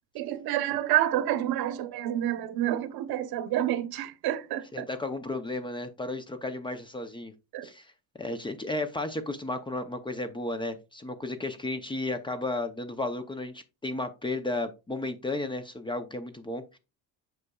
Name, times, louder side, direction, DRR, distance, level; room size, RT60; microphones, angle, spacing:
voice 1, 0.1-4.9 7.5-7.7, right 12 dB, 70° right, 1.0 m, -28 dB
voice 2, 4.7-7.3 7.6-7.9 8.2-16.8, left 2 dB, 15° left, 0.6 m, -33 dB
8.0 x 5.8 x 2.3 m
cardioid pair, 165°, 38 cm